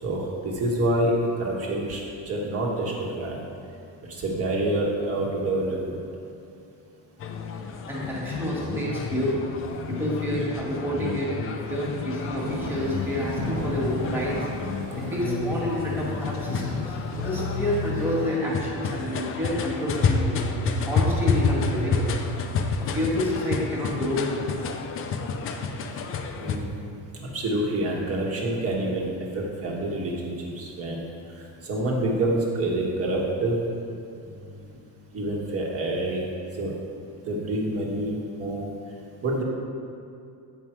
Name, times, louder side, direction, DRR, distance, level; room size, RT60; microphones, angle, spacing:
voice 1, 0.0-3.4 4.0-6.0 14.9-15.0 26.4-26.7 27.2-33.6 34.2-34.8 35.1-36.3 36.6-36.7 37.2-38.7 39.2-39.4, right 1 dB, 35° right, -3 dB, 1.5 m, -27 dB
sound 1, 7.2-26.6, left 4 dB, 35° left, 0.5 m, -29 dB
voice 2, 7.9-9.4 9.9-11.3 11.6-14.5 15.0-20.4 20.9-22.1 22.8-24.3, equal, 5° right, -6 dB, 1.7 m, -28 dB
Thunder / Rain, 12.4-18.4, right 2 dB, 80° right, 1.4 m, -38 dB
8.9 x 5.4 x 4.5 m, 2.5 s
cardioid pair, 150°, 39 cm